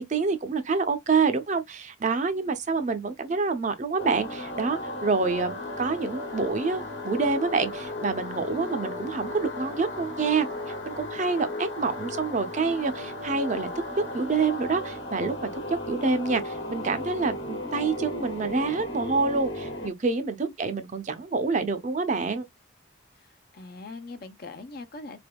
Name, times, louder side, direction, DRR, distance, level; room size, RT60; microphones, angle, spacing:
voice 1, 0.0-13.7 14.1-22.5, right 4 dB, 40° right, 0.5 m, -27 dB
sound 1, 4.0-19.9, left 1 dB, 70° left, 1.2 m, -35 dB
voice 2, 23.2-25.2, left 3 dB, 50° left, 0.5 m, -42 dB
3.7 x 3.4 x 2.2 m
head